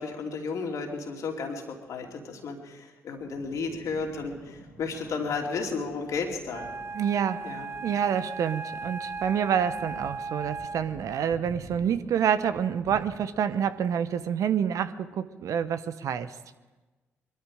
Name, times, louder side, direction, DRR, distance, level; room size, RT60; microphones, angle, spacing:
voice 1, 0.0-6.7 7.4-7.7, left 4 dB, 65° left, 1 dB, 2.7 m, -33 dB
sound 1, 3.2-14.1, equal, 80° left, 2.9 m, -50 dB
Wind instrument woodwind instrument, 6.5-11.1, right 4 dB, 45° right, 1.1 m, -37 dB
voice 2, 6.9-7.4 7.8-16.3, right 8 dB, 65° right, 12 dB, 0.8 m, -27 dB
22.0 x 13.0 x 5.0 m, 1.2 s
hypercardioid pair, 40°, 6 cm